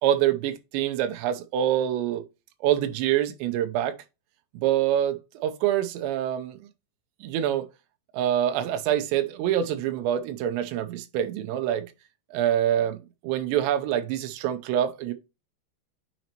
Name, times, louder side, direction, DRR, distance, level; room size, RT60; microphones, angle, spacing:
voice 1, 0.0-2.2 2.6-3.9 4.5-6.6 7.2-7.7 8.1-11.9 12.3-13.0 13.2-15.1, right 11 dB, 80° right, 3.0 m, -25 dB
9.2 x 4.0 x 2.9 m
omnidirectional pair, 5.3 m